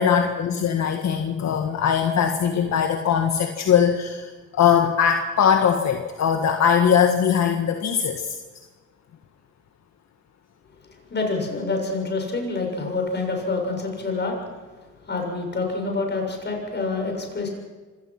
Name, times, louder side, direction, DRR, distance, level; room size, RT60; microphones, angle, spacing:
voice 1, 0.0-8.4, left 7 dB, 60° left, 5 dB, 1.8 m, -21 dB
voice 2, 11.1-14.4 15.1-17.5, left 3 dB, 35° left, 2 dB, 7.2 m, -27 dB
25.0 x 17.5 x 6.1 m, 1.3 s
cardioid pair, 90°, 30 cm